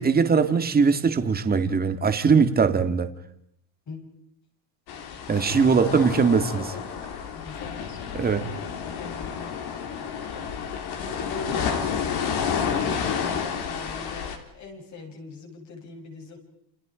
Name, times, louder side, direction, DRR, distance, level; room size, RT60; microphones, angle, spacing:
voice 1, 0.0-3.1 5.3-6.7 8.1-8.4, right 5 dB, 20° right, 8 dB, 2.0 m, -21 dB
sound 1, 4.9-14.4, left 7 dB, 65° left, 3.8 m, -30 dB
voice 2, 5.6-6.1 6.5-6.8 7.3-8.5 9.0-9.5 11.0-16.4, left 3 dB, 45° left, 1 dB, 7.5 m, -40 dB
29.0 x 29.0 x 5.1 m, 0.72 s
cardioid pair, 145°, 41 cm